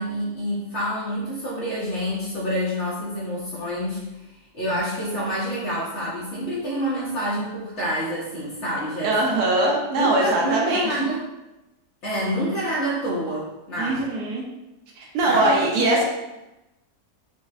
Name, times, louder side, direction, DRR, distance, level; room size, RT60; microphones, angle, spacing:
voice 1, 0.0-4.0 4.5-9.4 10.0-11.2 12.0-14.1 15.3-15.6, equal, 60° left, -7 dB, 0.8 m, -27 dB
voice 2, 9.0-11.0 13.8-14.4 15.0-16.0, right 2 dB, 75° right, -2 dB, 1.1 m, -21 dB
4.0 x 2.0 x 2.3 m, 0.99 s
omnidirectional pair, 1.8 m